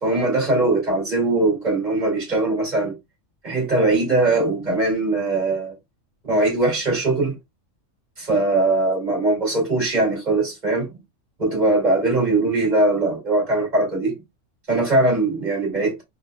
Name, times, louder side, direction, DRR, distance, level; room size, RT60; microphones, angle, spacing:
voice 1, 0.0-3.0 3.4-5.7 6.2-7.4 8.2-10.9 11.4-14.2 14.7-16.0, right 2 dB, 35° right, 2.7 m, -21 dB
4.0 x 4.0 x 2.4 m
omnidirectional pair, 1.4 m